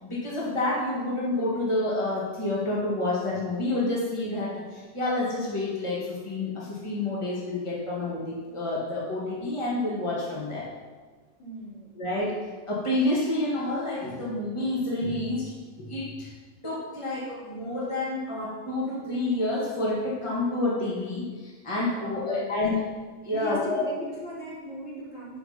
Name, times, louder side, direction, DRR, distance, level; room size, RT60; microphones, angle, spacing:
voice 1, 0.0-10.7 12.0-12.3 12.7-15.5 15.8-16.3 16.6-22.7 23.2-23.8, left 2 dB, 45° left, -5 dB, 0.4 m, -29 dB
voice 2, 11.4-11.9 21.9-22.8 23.3-25.4, equal, 25° left, -7 dB, 2.8 m, -38 dB
9.5 x 5.1 x 5.7 m, 1.4 s
omnidirectional pair, 3.6 m